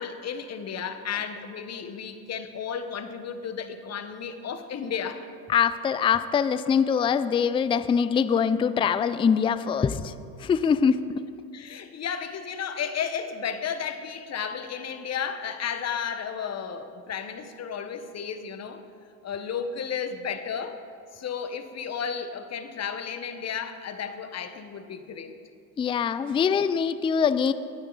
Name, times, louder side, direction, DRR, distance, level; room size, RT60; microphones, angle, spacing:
voice 1, 0.0-5.3 11.5-18.8 19.2-20.8 21.1-25.4, left 7 dB, 35° left, 9 dB, 1.3 m, -33 dB
voice 2, 5.5-10.1 10.4-11.2 25.8-27.5, left 7 dB, 15° left, 13 dB, 0.4 m, -23 dB
19.5 x 9.6 x 4.1 m, 2.3 s
hypercardioid pair, 75°, 45 cm